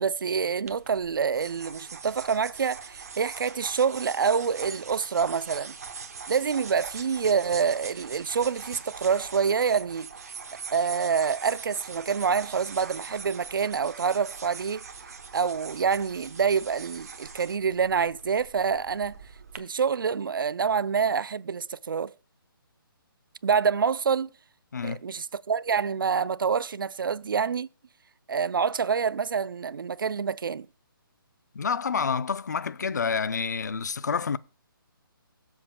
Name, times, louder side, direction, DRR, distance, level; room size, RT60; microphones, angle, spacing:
voice 1, 0.0-5.7 6.3-10.1 10.7-14.8 15.3-19.2 19.6-22.1 23.4-24.3 24.8-27.7 28.3-30.7, right 6 dB, 65° right, 0.4 m, -26 dB
sound 1, 0.7-19.6, right 5 dB, 40° right, 0.9 m, -42 dB
voice 2, 31.5-34.4, left 6 dB, 50° left, 0.4 m, -28 dB
21.5 x 7.2 x 2.2 m
hypercardioid pair, 175°, 12 cm